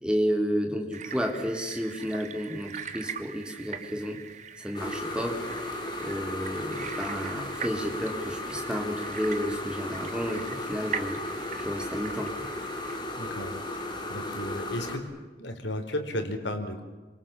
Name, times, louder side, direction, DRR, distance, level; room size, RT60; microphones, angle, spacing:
voice 1, 0.0-4.2 4.6-5.4 6.0-11.2 11.6-12.3, equal, 5° right, 3 dB, 3.6 m, -31 dB
sound 1, 0.9-13.0, right 7 dB, 40° right, 1.6 m, -41 dB
sound 2, 4.7-15.0, left 1 dB, 25° left, 3.9 m, -35 dB
voice 2, 13.2-15.1 15.4-16.8, left 1 dB, 85° left, 6 dB, 4.3 m, -34 dB
28.0 x 26.5 x 7.4 m, 1.2 s
head